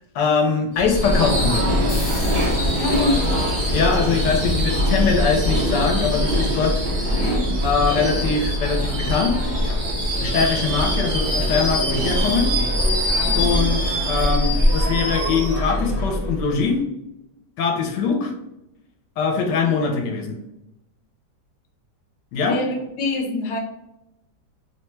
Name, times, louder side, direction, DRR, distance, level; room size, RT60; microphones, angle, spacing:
voice 1, 0.1-2.1 3.7-7.2 7.6-9.8 10.2-12.5 13.3-16.8 17.6-18.3 19.2-20.4 22.3-22.6, left 5 dB, 90° left, 2 dB, 1.3 m, -22 dB
Subway metro underground / Screech, 0.8-16.7, equal, 50° right, 0.6 m, -22 dB
sound 1, 1.9-6.8, left 2 dB, 45° left, 0.7 m, -40 dB
voice 2, 2.8-3.3 7.1-7.5 13.2-13.7 22.5-23.6, left 2 dB, 75° left, 2 dB, 1.2 m, -26 dB
3.0 x 2.2 x 3.1 m, 0.87 s
omnidirectional pair, 1.8 m